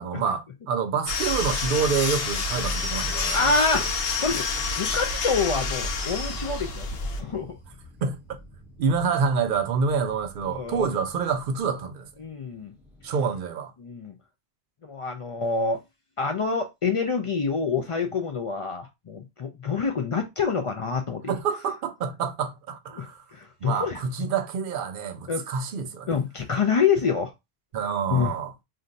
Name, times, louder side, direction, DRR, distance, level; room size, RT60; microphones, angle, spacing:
voice 1, 0.0-3.5 8.0-8.2 8.8-12.1 13.0-13.7 21.3-23.2 23.6-26.1 27.7-28.5, right 6 dB, 60° right, 0.7 m, -27 dB
sound 1, 1.1-7.2, left 4 dB, 75° left, 0.8 m, -28 dB
voice 2, 3.3-4.4 4.8-6.9 7.2-7.6 10.5-10.9 12.2-12.7 13.8-14.2 14.8-15.8 16.2-21.3 22.9-24.0 25.3-25.5 26.1-27.3 28.1-28.4, left 5 dB, 60° left, 0.3 m, -26 dB
sound 2, 5.3-13.2, equal, ahead, 0.6 m, -50 dB
2.5 x 2.2 x 3.8 m
omnidirectional pair, 1.0 m